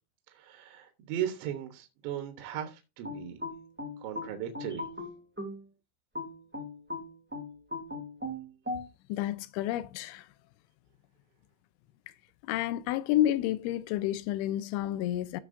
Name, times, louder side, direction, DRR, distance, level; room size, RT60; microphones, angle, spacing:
voice 1, 0.3-3.4 4.0-4.9, right 10 dB, 75° right, 3.2 m, -37 dB
sound 1, 3.0-5.6 6.1-8.9, left 2 dB, 5° right, 0.8 m, -38 dB
voice 2, 9.1-10.3 12.4-15.4, left 13 dB, 80° left, 3.1 m, -30 dB
16.0 x 5.9 x 2.6 m
omnidirectional pair, 5.5 m